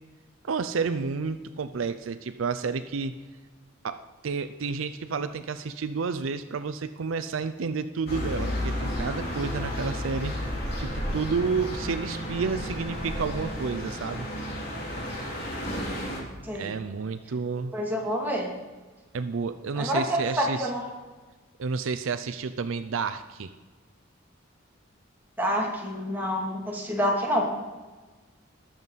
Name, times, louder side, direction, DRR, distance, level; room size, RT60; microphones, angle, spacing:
voice 1, 0.4-3.1 3.8-10.3 10.8-14.3 16.5-17.7 19.1-20.7 21.6-23.5, right 5 dB, 70° right, 10 dB, 0.5 m, -30 dB
sound 1, 8.1-16.2, left 1 dB, 50° left, 3.3 m, -32 dB
voice 2, 16.4-16.7 17.7-18.5 19.8-20.9 25.4-27.4, equal, 10° right, -2 dB, 2.3 m, -27 dB
19.5 x 7.3 x 4.1 m, 1.3 s
head